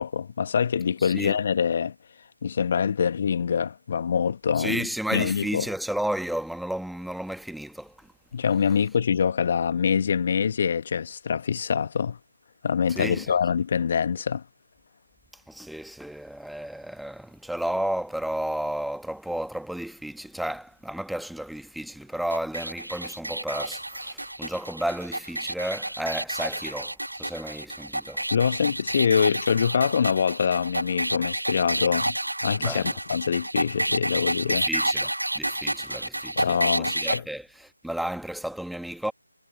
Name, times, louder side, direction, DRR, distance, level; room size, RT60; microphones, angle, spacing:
voice 1, 0.0-1.9 2.4-5.7 8.3-12.2 12.6-14.4 28.3-34.7 36.4-37.2, left 7 dB, 35° left, 1.4 m, -25 dB
voice 2, 1.0-1.4 4.6-7.9 12.9-13.3 15.5-26.9 27.2-28.2 32.6-32.9 34.5-37.4 37.8-39.1, right 1 dB, ahead, 1.4 m, -32 dB
sound 1, 22.3-37.2, right 1 dB, 80° right, 1.3 m, -30 dB
figure-of-eight pair, 155°, 0 cm